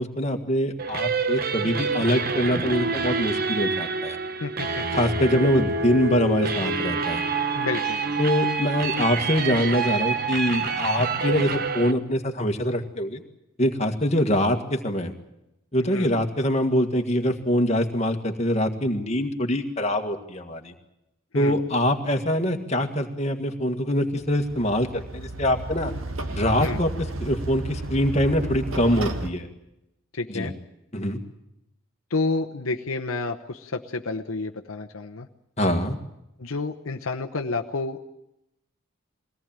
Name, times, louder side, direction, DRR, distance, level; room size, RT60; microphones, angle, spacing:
voice 1, 0.0-4.2 4.9-7.2 8.2-13.2 13.6-15.1 15.7-20.7 21.3-25.9 26.3-26.9 27.2-29.5 30.3-30.5 30.9-31.2 35.6-36.0, equal, 30° left, 4 dB, 1.9 m, -24 dB
sound 1, 0.8-11.9, right 4 dB, 45° right, 1.1 m, -27 dB
voice 2, 4.4-4.9 7.5-8.0 15.8-16.1 21.3-21.6 26.6-26.8 30.1-30.5 32.1-35.3 36.4-38.0, left 3 dB, 75° left, 4 dB, 1.0 m, -30 dB
sound 2, 24.1-29.3, right 2 dB, 70° right, 1.8 m, -33 dB
22.5 x 17.5 x 9.0 m, 0.87 s
head